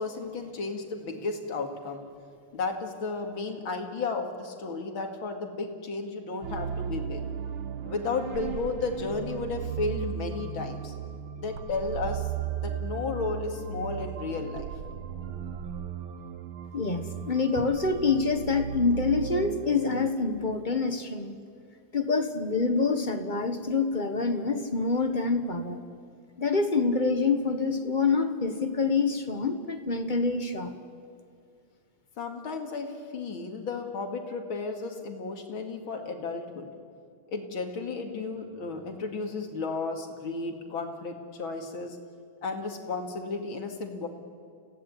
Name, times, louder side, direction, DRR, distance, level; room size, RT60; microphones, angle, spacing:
voice 1, 0.0-2.0 2.5-7.3 7.8-10.9 11.4-12.3 12.6-14.7 32.2-36.7 37.3-42.0 42.4-44.1, left 3 dB, 75° left, 4 dB, 2.9 m, -33 dB
sound 1, 6.4-20.1, right 8 dB, 75° right, 1.8 m, -36 dB
voice 2, 16.7-21.3 21.9-25.8 26.4-30.7, left 4 dB, 25° left, 7 dB, 1.3 m, -26 dB
29.5 x 16.5 x 8.6 m, 2.3 s
omnidirectional pair, 2.2 m